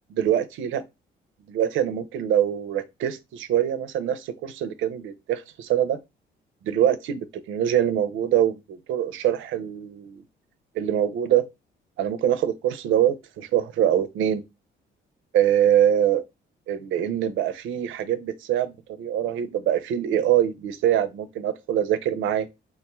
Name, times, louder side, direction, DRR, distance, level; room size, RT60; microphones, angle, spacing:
voice 1, 0.2-0.8 1.5-6.0 6.7-10.2 10.7-11.4 12.0-14.4 15.3-16.2 16.7-22.5, right 10 dB, 80° right, 0.5 m, -24 dB
3.6 x 2.3 x 2.9 m
cardioid pair, 90°, 20 cm